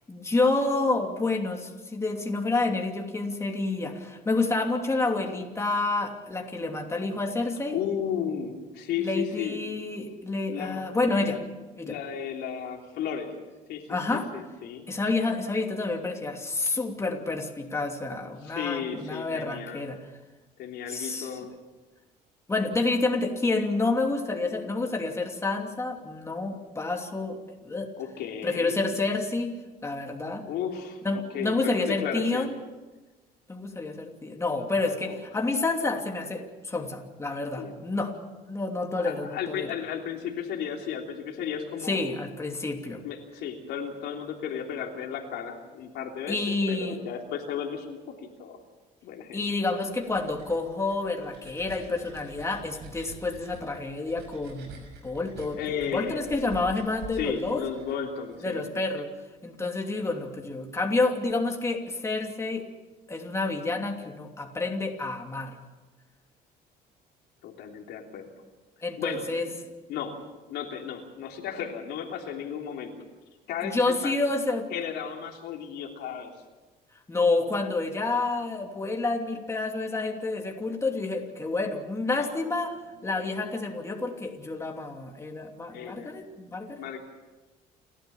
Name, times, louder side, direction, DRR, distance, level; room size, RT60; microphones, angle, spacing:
voice 1, 0.1-7.8 9.0-11.4 11.8-12.0 13.9-14.3 14.9-20.1 20.9-21.4 22.5-27.4 27.6-27.9 28.4-29.5 29.8-30.4 31.0-32.6 33.5-38.1 38.4-39.7 41.9-43.0 46.3-47.0 49.3-55.6 55.9-57.6 58.4-59.1 59.4-62.6 63.1-65.6 68.8-69.5 73.6-74.7 77.1-86.8, left 3 dB, 15° left, 2 dB, 2.9 m, -29 dB
voice 2, 7.7-9.6 10.5-10.9 11.8-13.3 13.7-14.9 18.4-19.8 20.6-21.5 28.0-28.8 30.5-32.5 34.8-35.2 37.6-37.8 39.0-42.0 43.0-48.0 48.4-48.6 49.0-49.4 55.6-56.6 57.2-58.6 67.4-68.3 69.0-69.6 69.9-70.2 70.5-72.9 73.5-74.1 74.7-76.3 82.2-82.3 83.0-83.2 85.7-86.1 86.8-87.0, left 8 dB, 80° left, 1 dB, 3.3 m, -34 dB
sound 1, 49.4-58.4, right 4 dB, 80° right, 5.9 m, -47 dB
29.5 x 13.0 x 7.1 m, 1.2 s
cardioid pair, 110°, 17 cm